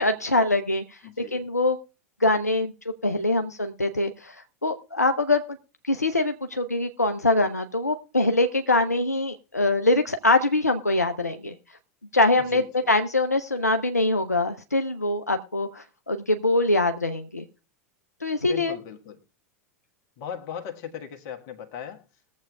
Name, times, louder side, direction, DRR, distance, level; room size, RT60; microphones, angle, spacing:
voice 1, 0.0-1.0 1.3-1.8 2.2-2.7 3.0-5.6 5.8-11.5 12.1-17.4 18.2-18.8, left 2 dB, 85° left, 7 dB, 0.6 m, -23 dB
voice 2, 1.0-1.4 12.5-12.9 18.5-19.2 20.2-22.0, left 8 dB, 45° left, 5 dB, 1.5 m, -38 dB
21.5 x 7.4 x 2.3 m, 0.35 s
figure-of-eight pair, 85°, 8 cm